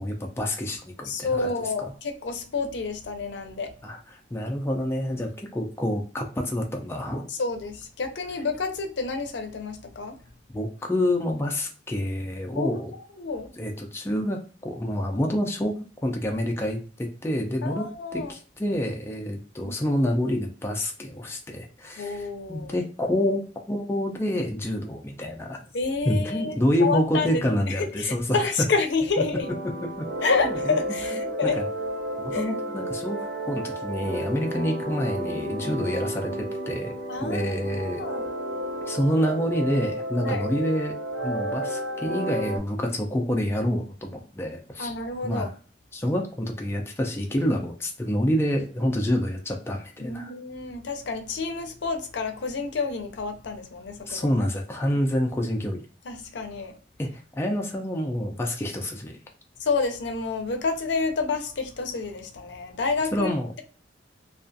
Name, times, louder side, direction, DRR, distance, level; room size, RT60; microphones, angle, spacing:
voice 1, 0.0-1.5 3.8-7.3 10.5-12.9 13.6-15.7 16.0-17.9 18.1-25.6 26.0-28.4 30.0-30.1 30.5-30.8 31.4-31.6 32.2-36.9 37.2-38.0 38.9-40.9 41.2-44.9 45.2-45.5 45.9-50.3 54.1-55.8 57.0-59.2 63.1-63.5, equal, 15° left, 1 dB, 0.3 m, -27 dB
voice 2, 1.0-3.7 7.3-10.2 12.5-12.8 13.2-13.5 17.6-18.3 19.6-19.7 22.0-22.7 25.7-29.5 30.2-31.6 32.3-32.5 37.1-37.5 37.8-38.2 40.2-40.5 44.8-45.5 50.0-54.3 56.0-56.7 59.6-63.3, left 4 dB, 75° left, 5 dB, 0.5 m, -29 dB
sound 1, 29.4-42.6, right 1 dB, 80° right, 0.6 m, -32 dB
2.4 x 2.3 x 2.5 m, 0.38 s
head